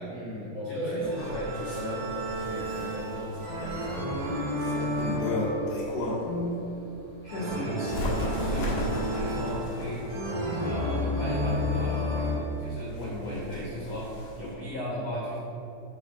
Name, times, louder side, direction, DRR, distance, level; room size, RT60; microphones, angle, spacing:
voice 1, 0.1-2.1 2.4-4.2 12.9-13.4, equal, 75° right, -8 dB, 0.8 m, -36 dB
voice 2, 0.6-1.5 6.2-6.6 7.2-10.0 10.6-14.1 14.4-15.4, equal, 85° left, -5 dB, 1.4 m, -36 dB
Bird, 1.0-6.4 6.9-14.5, left 2 dB, 60° left, 1.7 m, -35 dB
sound 1, 1.0-12.4, equal, 55° right, 1.8 m, -32 dB
8.3 x 4.2 x 6.4 m, 2.9 s
omnidirectional pair, 5.1 m